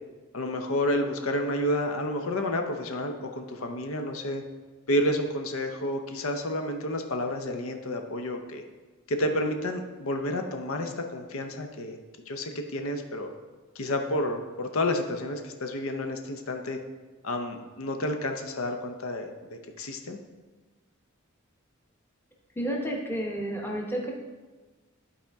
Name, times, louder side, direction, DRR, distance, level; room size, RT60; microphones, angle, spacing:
voice 1, 0.3-4.4 4.9-8.6 9.1-12.0 12.3-13.3 13.8-16.8 17.2-20.2, left 1 dB, 80° left, 5 dB, 0.7 m, -30 dB
voice 2, 22.6-24.1, right 1 dB, 10° left, -1 dB, 0.8 m, -31 dB
11.5 x 4.3 x 3.5 m, 1.3 s
head